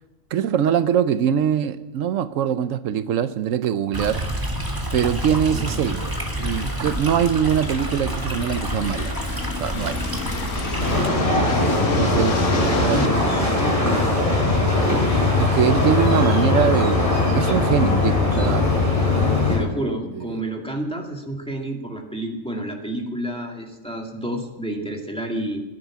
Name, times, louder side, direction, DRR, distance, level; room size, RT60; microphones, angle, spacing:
voice 1, 0.3-4.2 4.9-6.1 6.4-9.1 9.6-10.0 11.9-13.1 15.4-18.6 19.6-19.7 20.2-20.4, right 9 dB, 85° right, 12 dB, 1.1 m, -23 dB
Stream, 3.9-11.1, right 1 dB, 15° right, 1.9 m, -28 dB
sound 1, 5.8-13.1, left 5 dB, 70° left, 1.4 m, -31 dB
sound 2, 10.8-19.6, left 2 dB, 25° left, 4.6 m, -20 dB
voice 2, 12.5-14.1 19.5-25.6, right 1 dB, 5° left, 1 dB, 2.0 m, -30 dB
15.5 x 11.0 x 7.4 m, 1.1 s
omnidirectional pair, 1.3 m